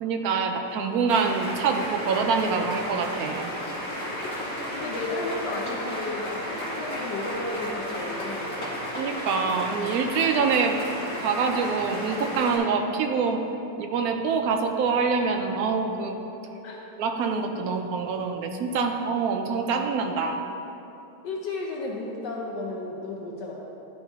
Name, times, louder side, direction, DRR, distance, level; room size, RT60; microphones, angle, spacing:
voice 1, 0.0-3.5 9.0-10.8 11.2-13.4 13.8-16.2 17.0-20.4, right 5 dB, 70° right, 4 dB, 0.9 m, -25 dB
sound 1, 1.1-12.6, equal, 45° left, 1.9 m, -33 dB
voice 2, 4.4-8.9 16.6-16.8 21.2-23.6, left 2 dB, 75° left, -1 dB, 1.3 m, -33 dB
11.5 x 4.0 x 3.5 m, 2.9 s
omnidirectional pair, 2.0 m